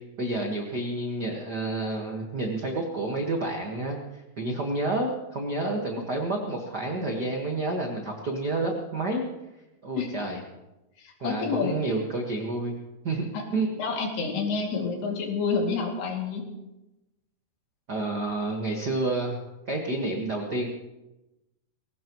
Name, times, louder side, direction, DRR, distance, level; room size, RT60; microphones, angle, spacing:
voice 1, 0.2-9.3 9.8-10.4 11.2-12.7 13.0-13.7 17.9-19.4 19.7-20.7, right 2 dB, 60° right, 0 dB, 1.0 m, -29 dB
voice 2, 11.0-11.8 13.3-13.4 13.8-16.4, left 5 dB, 80° left, 0 dB, 4.5 m, -28 dB
21.0 x 18.0 x 3.1 m, 0.98 s
omnidirectional pair, 4.6 m